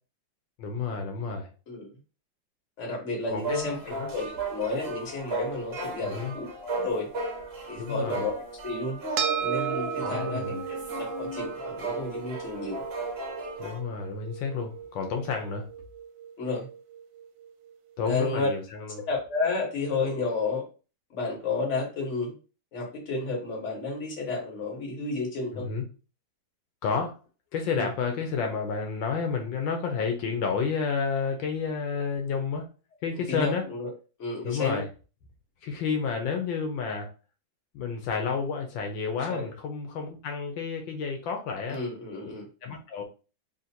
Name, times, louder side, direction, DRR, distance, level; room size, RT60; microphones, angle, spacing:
voice 1, 0.6-1.5 3.3-4.1 6.1-6.3 7.8-8.2 10.0-10.6 13.6-15.7 18.0-19.0 25.5-25.8 26.8-27.1 27.5-32.7 33.0-33.6 34.4-34.9 35.6-37.1 37.7-41.8 42.6-43.0, left 5 dB, 85° left, 1.5 m, -30 dB
voice 2, 2.8-7.1 7.7-8.3 8.6-9.0 9.4-10.5 10.9-12.8 16.4-16.7 18.0-18.5 19.1-20.6 21.1-22.3 22.7-25.7 27.7-27.9 33.3-33.9 34.2-34.8 39.3-39.5 41.7-42.4, left 3 dB, 40° left, 1.6 m, -31 dB
sound 1, 3.3-13.8, right 2 dB, 40° right, 1.0 m, -35 dB
sound 2, 9.2-17.8, right 7 dB, 75° right, 1.2 m, -36 dB
3.3 x 2.5 x 4.2 m
omnidirectional pair, 2.0 m